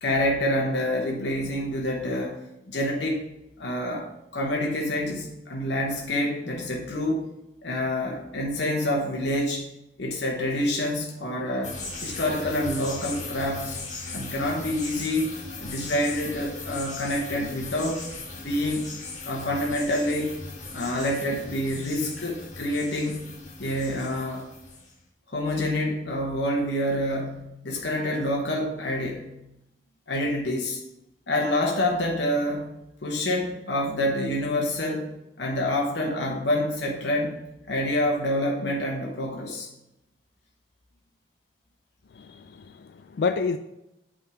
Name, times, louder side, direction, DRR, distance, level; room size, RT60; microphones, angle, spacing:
voice 1, 0.0-2.4 2.7-3.2 3.6-7.3 7.6-9.7 10.0-11.8 12.0-13.8 14.1-18.0 18.4-18.9 19.2-20.4 20.7-23.2 23.6-24.4 25.3-29.3 30.1-30.8 31.3-32.7 33.0-35.1 35.4-37.4 37.7-39.7, left 1 dB, 80° left, -1 dB, 1.0 m, -27 dB
sound 1, 11.6-24.9, left 3 dB, 40° left, 1.4 m, -38 dB
voice 2, 42.1-43.6, left 5 dB, 65° left, 9 dB, 0.3 m, -29 dB
8.5 x 3.7 x 4.7 m, 0.88 s
head